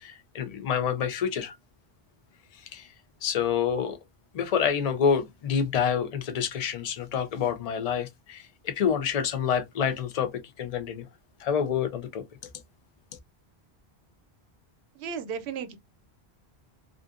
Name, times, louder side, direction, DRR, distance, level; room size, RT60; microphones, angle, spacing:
voice 1, 0.0-1.5 2.7-2.9 3.2-4.0 4.3-10.3 10.6-11.0 11.4-12.2, left 7 dB, 50° left, 0.5 m, -27 dB
voice 2, 14.9-15.8, right 6 dB, 80° right, 0.8 m, -34 dB
2.5 x 2.4 x 2.3 m
omnidirectional pair, 1.1 m